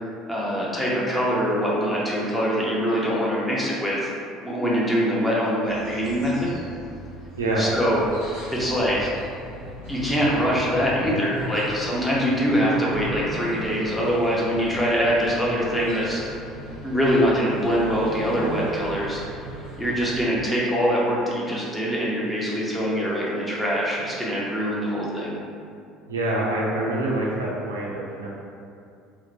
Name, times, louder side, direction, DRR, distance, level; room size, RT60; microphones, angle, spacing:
voice 1, 0.3-4.1 4.4-6.5 7.6-8.0 8.5-9.1 9.9-16.2 16.8-19.2 19.8-25.3, equal, 5° left, -6 dB, 0.7 m, -23 dB
sound 1, 5.7-20.3, right 1 dB, 80° left, 1.0 m, -37 dB
voice 2, 7.4-7.8 26.1-28.3, right 1 dB, 80° right, -4 dB, 0.3 m, -25 dB
2.8 x 2.0 x 2.5 m, 2.4 s
figure-of-eight pair, 60°, 0 cm